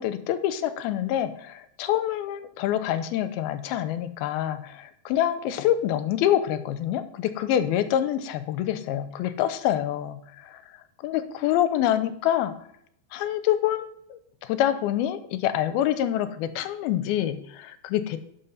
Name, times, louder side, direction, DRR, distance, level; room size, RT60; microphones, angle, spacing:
voice 1, 0.0-10.6 11.0-12.5 13.1-18.2, left 11 dB, 80° left, 12 dB, 2.5 m, -26 dB
11.5 x 6.0 x 5.4 m, 0.71 s
omnidirectional pair, 4.5 m